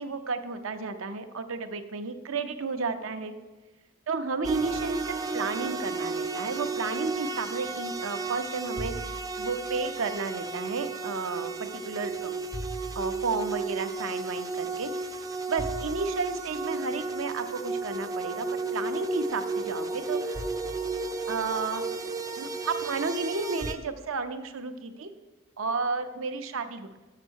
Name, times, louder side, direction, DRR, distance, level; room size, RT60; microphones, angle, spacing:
voice 1, 0.0-3.3 4.1-12.4 13.0-15.2 15.5-20.4 21.3-25.1 25.6-26.9, right 4 dB, 80° right, 8 dB, 0.7 m, -32 dB
sound 1, 4.4-23.7, right 3 dB, 15° right, 0.4 m, -33 dB
6.8 x 6.6 x 6.4 m, 1.2 s
head